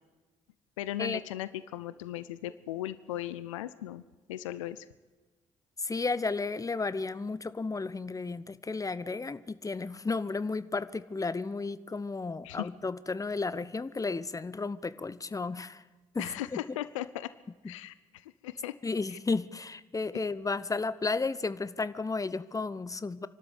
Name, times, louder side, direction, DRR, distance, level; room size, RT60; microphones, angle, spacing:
voice 1, 0.8-4.0 4.3-4.9 12.4-12.7 16.2-17.3 17.7-18.7 19.1-19.2 20.1-20.2, left 14 dB, 80° left, 15 dB, 0.6 m, -37 dB
voice 2, 5.8-15.8 16.1-16.6 17.6-17.7 18.8-23.3, left 3 dB, 20° left, 16 dB, 1.0 m, -33 dB
26.5 x 12.5 x 8.2 m, 1.2 s
figure-of-eight pair, 45°, 16 cm